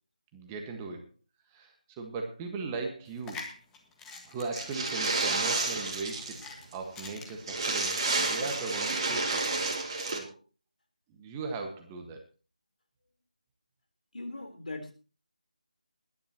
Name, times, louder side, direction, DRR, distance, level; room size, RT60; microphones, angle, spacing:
voice 1, 0.3-1.1 1.5-3.5 4.2-6.4 6.7-9.6 10.0-10.4 11.1-12.2, right 4 dB, 15° right, 3 dB, 1.5 m, -38 dB
sound 1, 3.1-8.3, left 4 dB, 10° left, 1.6 m, -47 dB
sound 2, 4.5-6.5 6.7-6.8 7.1-7.2 7.4-10.2, right 3 dB, 35° right, 3.1 m, -30 dB
voice 2, 14.1-14.9, left 2 dB, 65° left, 5 dB, 3.9 m, -39 dB
22.0 x 10.5 x 2.9 m, 0.36 s
figure-of-eight pair, 160°, 4 cm